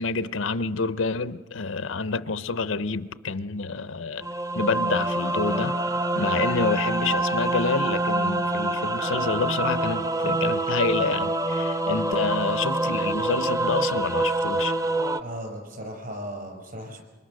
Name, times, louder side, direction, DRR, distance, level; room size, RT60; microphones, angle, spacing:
voice 1, 0.0-4.3 4.6-5.8 6.1-14.8, left 4 dB, 80° left, 0.7 m, -28 dB
sound 1, 4.2-15.2, right 2 dB, 15° right, 0.8 m, -26 dB
voice 2, 15.2-17.0, equal, 50° right, 5.5 m, -36 dB
27.5 x 23.5 x 6.5 m
head